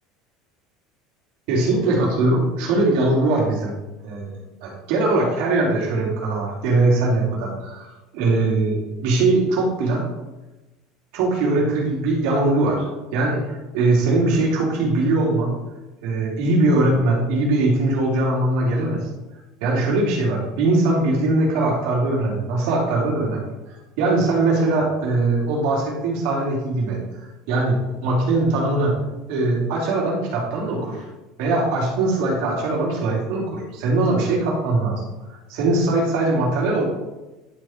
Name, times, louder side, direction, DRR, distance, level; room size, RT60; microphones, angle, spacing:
voice 1, 1.5-3.7 4.0-4.3 4.6-7.9 8.1-10.0 11.1-15.5 16.0-19.1 19.6-29.0 29.3-31.1 31.4-35.0 35.3-36.8, right 2 dB, 65° right, -2 dB, 3.0 m, -21 dB
11.0 x 5.1 x 4.4 m, 1.1 s
cardioid pair, 170°, 0 cm